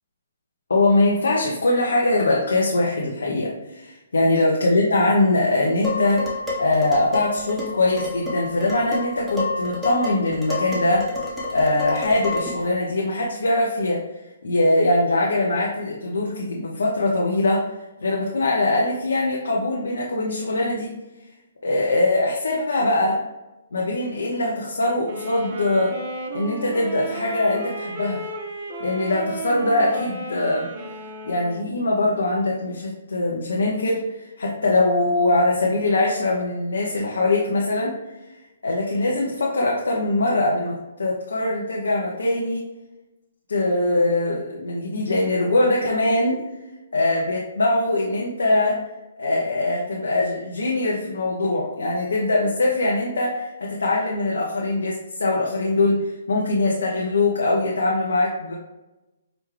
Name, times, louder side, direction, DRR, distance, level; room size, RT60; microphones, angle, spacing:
voice 1, 0.7-11.0 11.5-14.0 14.4-17.6 18.0-20.9 21.6-23.2 23.7-25.9 26.3-28.2 28.8-30.7 31.2-38.0 38.6-42.6 43.5-46.4 46.9-48.8 49.2-58.5, left 2 dB, 85° left, -3 dB, 0.7 m, -22 dB
Dishes pots and pans, 5.8-12.7, left 2 dB, 10° right, 1.1 m, -29 dB
sound 1, 25.0-31.6, right 2 dB, 45° right, 0.7 m, -34 dB
5.0 x 2.2 x 3.2 m, 1.0 s
hypercardioid pair, 145°, 0 cm